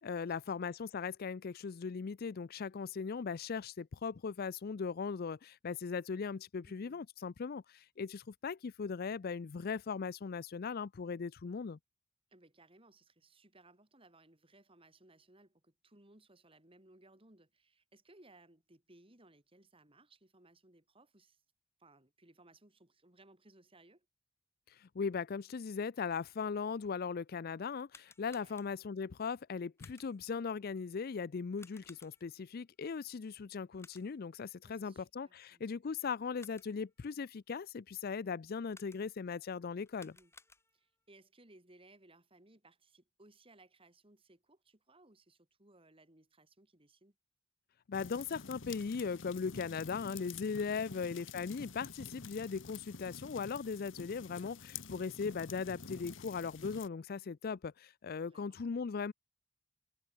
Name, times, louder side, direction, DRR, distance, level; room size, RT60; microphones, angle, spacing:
voice 1, 0.0-11.8 24.7-40.1 47.9-59.1, left 5 dB, 50° left, 0.4 m, -39 dB
voice 2, 6.7-7.0 12.3-21.4 21.8-24.1 28.4-28.6 34.6-35.6 40.0-40.3 40.7-47.2 50.7-51.0 58.2-58.6, right 2 dB, 30° right, 4.0 m, -63 dB
sound 1, 27.8-29.0 29.8-30.3 31.6-32.4 33.8-34.3 36.1-36.9 38.7-39.3 39.8-41.0, left 3 dB, 15° left, 7.7 m, -61 dB
sound 2, 47.9-56.9, left 5 dB, 65° left, 1.4 m, -49 dB
head